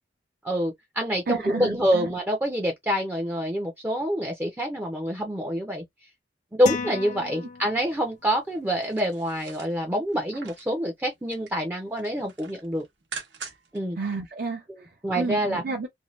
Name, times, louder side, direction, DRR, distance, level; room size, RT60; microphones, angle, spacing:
voice 1, 0.4-5.8 6.5-12.8 13.7-14.0 15.0-15.6, equal, 10° right, 0.5 m, -26 dB
voice 2, 1.3-2.1 14.0-14.9 15.1-15.9, right 4 dB, 60° right, 0.6 m, -31 dB
sound 1, 6.7-8.2, left 5 dB, 45° left, 0.5 m, -34 dB
sound 2, 8.7-10.7 11.1-11.6 11.9-13.8 14.2-14.3, right 5 dB, 85° right, 0.9 m, -43 dB
2.7 x 2.2 x 3.0 m
head